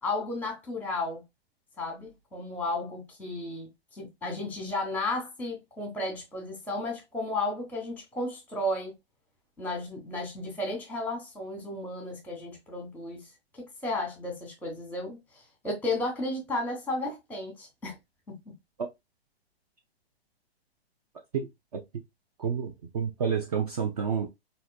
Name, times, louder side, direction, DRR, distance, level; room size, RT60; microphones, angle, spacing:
voice 1, 0.0-1.2 1.8-3.7 3.9-8.9 9.6-13.2 13.8-15.2 15.6-18.0 18.3-18.4, left 2 dB, 5° left, 1.1 m, -33 dB
voice 2, 21.3-21.8 22.4-24.3, right 7 dB, 35° right, 0.5 m, -30 dB
4.2 x 2.7 x 2.3 m
figure-of-eight pair, 115°, 32 cm